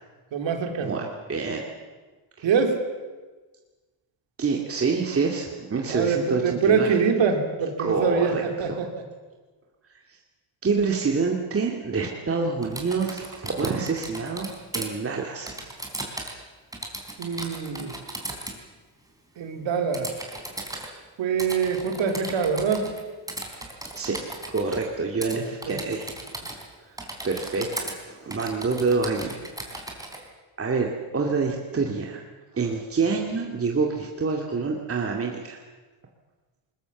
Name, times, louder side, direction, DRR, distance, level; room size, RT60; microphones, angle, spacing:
voice 1, 0.3-1.1 2.4-2.8 5.9-9.1 17.2-17.9 19.4-20.1 21.2-22.9 25.3-25.8, right 6 dB, 65° right, 5 dB, 3.4 m, -24 dB
voice 2, 1.3-1.7 2.4-2.5 4.4-7.0 7.8-8.7 9.9-10.0 10.6-15.6 23.9-24.2 24.5-26.1 26.9-27.0 27.2-29.4 30.1-30.2 30.6-32.2 32.5-35.6, right 4 dB, 30° right, 1 dB, 2.4 m, -27 dB
Typing, 12.6-14.9 15.5-16.4 16.7-18.6 19.9-20.9 21.4-23.0 23.3-24.8 25.2-25.4 25.6-26.7 27.0-28.0 28.3-30.2, right 1 dB, 5° right, 3.8 m, -36 dB
20.5 x 20.5 x 7.2 m, 1.3 s
cardioid pair, 115°, 48 cm